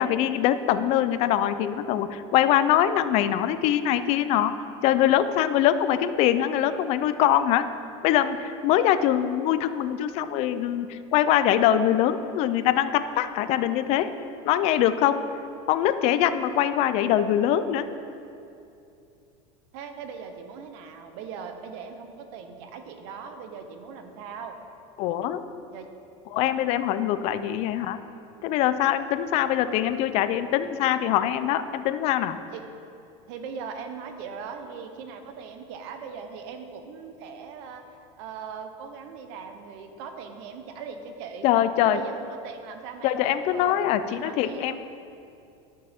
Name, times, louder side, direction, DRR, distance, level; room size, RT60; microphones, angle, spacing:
voice 1, 0.0-4.5 4.8-7.7 8.0-14.1 14.4-15.2 15.7-17.9 25.0-25.4 26.3-28.0 28.4-32.4 41.4-42.0 43.0-44.8, left 11 dB, 45° left, 12 dB, 0.4 m, -23 dB
voice 2, 19.7-24.6 25.7-25.9 32.5-32.6 33.3-37.8 38.2-41.5 41.8-43.7 44.1-44.8, right 6 dB, 60° right, 6 dB, 0.8 m, -40 dB
11.0 x 6.7 x 3.5 m, 2.6 s
supercardioid pair, 150°, 16 cm